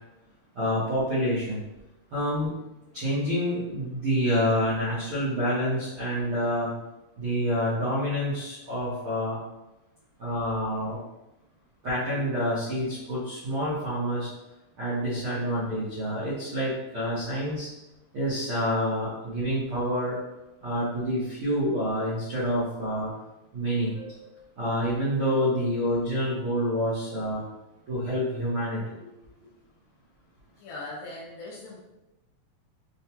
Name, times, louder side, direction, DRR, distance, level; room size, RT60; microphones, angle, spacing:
voice 1, 0.5-1.6 2.1-2.5 2.9-6.7 7.2-9.4 10.2-11.0 11.8-14.3 14.8-17.7 18.1-20.1 20.6-23.1 23.5-24.3 24.6-27.4 27.9-28.8, equal, 75° right, -11 dB, 1.2 m, -27 dB
voice 2, 30.6-31.8, left 2 dB, 70° left, -4 dB, 2.4 m, -39 dB
5.6 x 2.2 x 2.9 m, 0.97 s
omnidirectional pair, 4.3 m